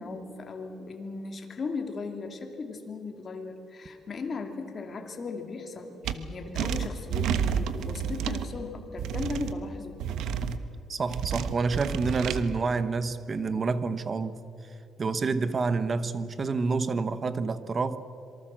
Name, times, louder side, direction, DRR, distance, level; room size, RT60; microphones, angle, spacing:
voice 1, 0.0-10.0, left 4 dB, 35° left, 4 dB, 2.8 m, -37 dB
sound 1, 6.1-6.2 6.6-8.5 9.0-9.5 10.0-10.6 11.1-12.4, right 7 dB, 80° right, 1.2 m, -30 dB
voice 2, 10.9-14.4 15.0-18.0, right 4 dB, 30° right, 13 dB, 1.1 m, -28 dB
26.5 x 24.0 x 7.6 m, 2.8 s
cardioid pair, 135°, 0 cm